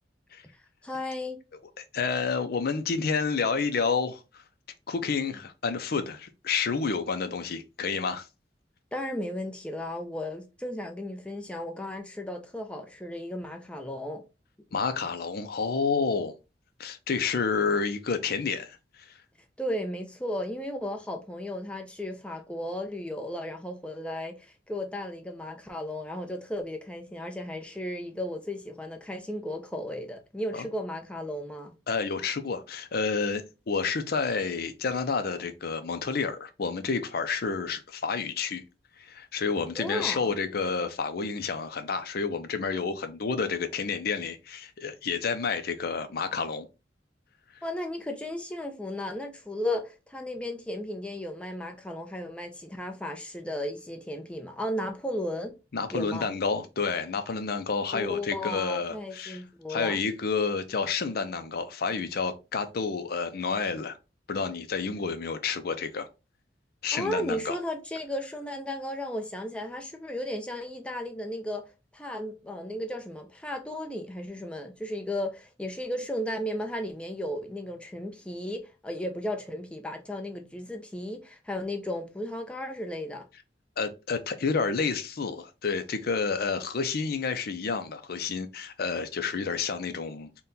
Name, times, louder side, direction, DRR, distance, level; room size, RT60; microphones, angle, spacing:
voice 1, 0.8-1.4 8.9-14.2 19.6-31.7 39.8-40.3 47.6-55.6 55.9-56.3 57.9-60.0 66.9-71.6 71.9-83.2, left 1 dB, 5° left, 0.6 m, -35 dB
voice 2, 1.8-4.4 4.9-8.3 14.7-16.3 16.8-19.2 30.5-30.7 31.9-38.6 39.0-46.7 55.7-59.4 59.7-64.0 64.3-66.1 66.8-67.6 83.8-90.3, left 5 dB, 55° left, 0.5 m, -29 dB
4.1 x 2.2 x 3.7 m
head